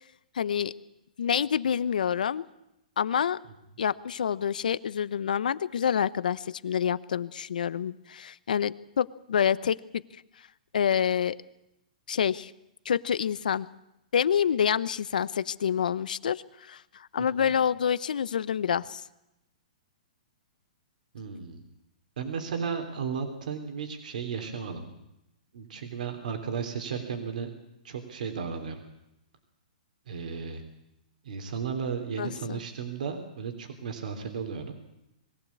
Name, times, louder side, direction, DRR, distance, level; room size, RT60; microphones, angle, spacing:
voice 1, 0.3-0.7 1.2-2.5 3.0-3.4 3.8-10.0 10.7-11.4 12.1-12.5 12.8-13.7 14.1-19.0 32.2-32.6, left 8 dB, 85° left, 17 dB, 0.8 m, -27 dB
voice 2, 17.2-17.5 21.1-21.6 22.2-24.9 25.5-27.5 27.8-28.8 30.1-30.6 31.2-34.7, right 6 dB, 70° right, 5 dB, 3.3 m, -34 dB
21.0 x 15.5 x 8.5 m, 0.89 s
hypercardioid pair, 155°, 4 cm